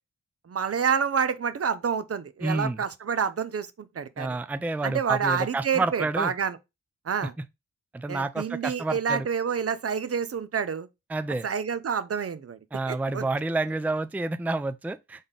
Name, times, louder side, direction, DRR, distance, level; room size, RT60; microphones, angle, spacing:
voice 1, 0.5-4.4 4.8-6.6 7.1-7.3 8.1-10.9 11.4-12.6 12.9-13.3, right 6 dB, 50° right, 0.7 m, -28 dB
voice 2, 2.4-2.8 4.2-6.3 7.9-9.3 11.1-11.5 12.7-15.3, right 2 dB, 5° right, 0.4 m, -29 dB
3.9 x 3.5 x 3.6 m
cardioid pair, 40°, 30 cm